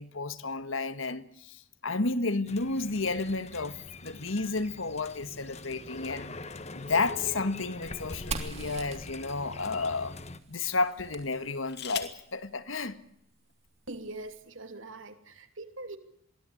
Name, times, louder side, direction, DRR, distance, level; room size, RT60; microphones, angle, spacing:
voice 1, 0.0-6.4 6.7-10.1 10.5-13.0, left 3 dB, 75° left, 1.8 m, -32 dB
sound 1, 2.5-10.4, left 2 dB, 30° left, 1.4 m, -44 dB
Fire, 8.3-12.0, right 3 dB, 30° right, 2.9 m, -42 dB
sound 2, 11.3-12.3 13.5-13.6 13.9-14.3, left 10 dB, 50° left, 2.6 m, -42 dB
voice 2, 13.9-16.0, right 2 dB, 70° right, 3.0 m, -42 dB
23.5 x 16.5 x 9.9 m
head